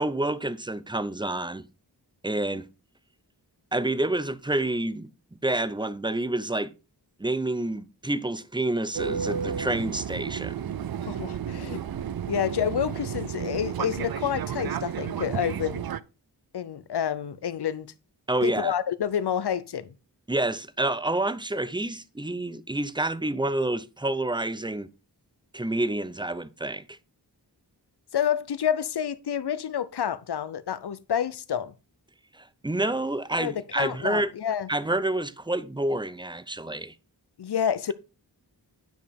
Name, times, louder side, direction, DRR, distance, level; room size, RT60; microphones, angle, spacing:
voice 1, 0.0-1.7 2.2-2.7 3.7-5.1 5.4-6.7 7.2-10.6 18.3-18.8 20.3-24.9 25.5-27.0 32.3-34.3 34.7-36.9, right 1 dB, 10° right, 0.6 m, -28 dB
Fixed-wing aircraft airplane, 8.9-16.0, right 8 dB, 60° right, 0.5 m, -32 dB
voice 2, 11.1-11.8 12.3-15.8 16.5-17.9 18.4-19.9 28.1-31.7 33.4-34.7 37.4-37.9, left 9 dB, 70° left, 0.7 m, -28 dB
9.3 x 5.1 x 5.2 m
wide cardioid pair, 80°, 41 cm